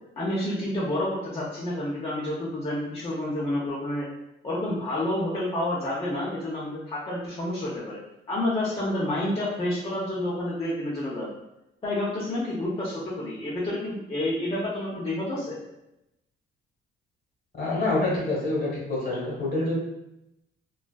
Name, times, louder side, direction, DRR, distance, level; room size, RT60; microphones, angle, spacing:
voice 1, 0.2-4.1 4.4-8.0 8.3-11.3 11.8-15.6, left 1 dB, 30° left, -7 dB, 0.6 m, -29 dB
voice 2, 17.6-19.7, left 2 dB, 50° left, -4 dB, 1.1 m, -26 dB
2.3 x 2.3 x 2.3 m, 0.87 s
cardioid pair, 90°, 20 cm